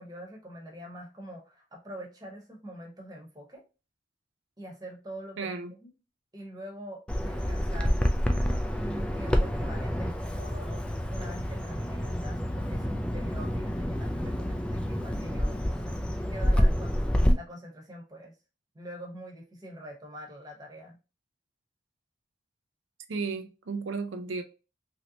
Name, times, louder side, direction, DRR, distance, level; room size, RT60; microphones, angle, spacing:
voice 1, 0.0-3.6 4.6-5.9 6.3-8.0 8.7-18.3 18.7-21.0, equal, 20° right, 0.9 m, -44 dB
voice 2, 5.4-5.7 23.1-24.4, right 4 dB, 90° right, 0.5 m, -33 dB
Bird vocalization bird call bird song, 7.1-17.3, equal, 5° left, 0.3 m, -28 dB
3.1 x 2.7 x 2.8 m
head